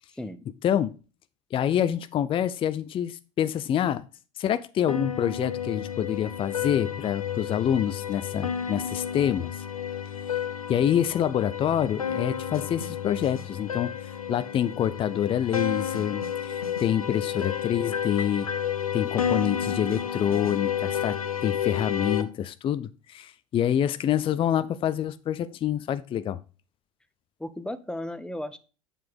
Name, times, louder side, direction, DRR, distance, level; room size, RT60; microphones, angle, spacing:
voice 1, 0.1-0.4 27.4-28.6, left 1 dB, 5° left, 0.9 m, -35 dB
voice 2, 1.5-4.0 4.4-9.6 10.7-18.5 18.9-26.4, left 10 dB, 30° left, 0.5 m, -27 dB
sound 1, 4.9-22.2, left 8 dB, 85° left, 0.7 m, -31 dB
7.6 x 6.7 x 3.6 m
figure-of-eight pair, 75°, 18 cm